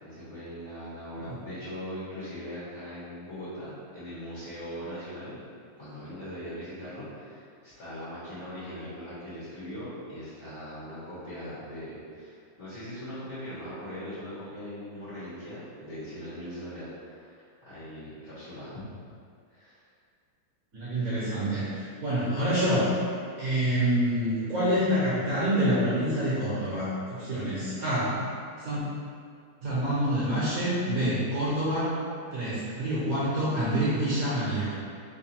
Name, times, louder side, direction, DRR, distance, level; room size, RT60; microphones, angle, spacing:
voice 1, 0.0-5.4 5.7-18.8 19.5-19.8 20.9-21.1, equal, 40° left, -13 dB, 1.3 m, -40 dB
voice 2, 20.7-22.9 23.4-28.2 28.6-28.8 29.6-31.9 32.3-34.7, right 1 dB, 55° right, -10 dB, 1.2 m, -27 dB
3.9 x 2.2 x 4.3 m, 2.2 s
omnidirectional pair, 2.3 m